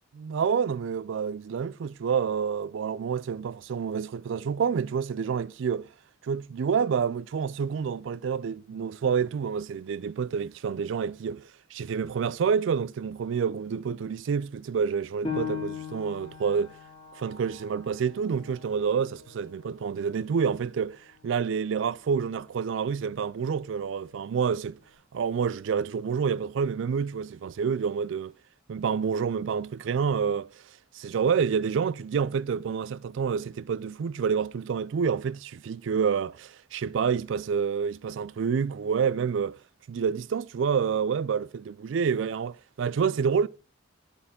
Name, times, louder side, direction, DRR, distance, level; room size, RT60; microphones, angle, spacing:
voice 1, 0.1-5.9 6.2-16.8 17.2-24.8 25.1-28.3 28.7-30.6 30.9-39.6 39.9-43.5, right 6 dB, 60° right, 0.3 m, -28 dB
Piano, 15.2-20.4 20.9-21.0 21.6-22.1, left 6 dB, 25° left, 2.7 m, -39 dB
8.1 x 7.8 x 3.7 m
head